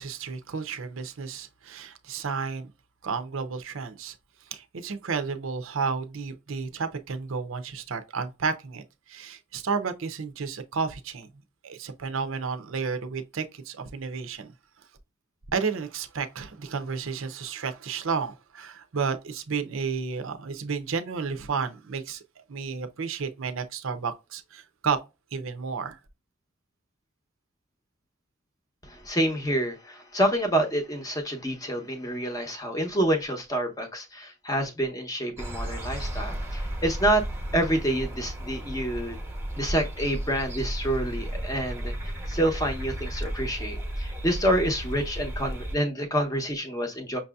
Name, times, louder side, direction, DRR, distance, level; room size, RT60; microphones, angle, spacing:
voice 1, 0.0-2.7 3.0-4.1 4.5-11.3 11.6-14.5 15.5-22.2 22.5-25.0 25.3-26.0, right 5 dB, 65° right, 0.6 m, -32 dB
voice 2, 28.8-37.2 37.5-39.2 39.6-47.2, right 1 dB, 15° left, 0.8 m, -28 dB
sound 1, 35.4-45.8, right 1 dB, 10° right, 0.8 m, -34 dB
5.9 x 2.7 x 2.3 m
head